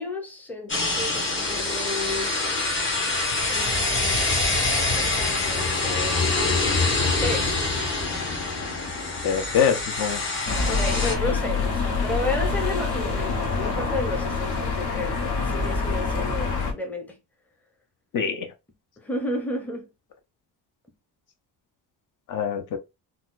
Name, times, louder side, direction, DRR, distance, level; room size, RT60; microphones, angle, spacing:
voice 1, 0.0-2.4 3.5-4.4 4.8-6.8 7.2-7.6 10.6-17.2 19.0-19.9, left 2 dB, 5° left, 0.6 m, -32 dB
sound 1, 0.7-11.1, left 3 dB, 30° left, 0.9 m, -25 dB
voice 2, 9.2-10.2 18.1-18.5 22.3-22.8, left 7 dB, 55° left, 0.6 m, -24 dB
sound 2, 10.5-16.7, left 4 dB, 70° left, 1.1 m, -26 dB
4.0 x 2.2 x 2.4 m
cardioid pair, 160°, 39 cm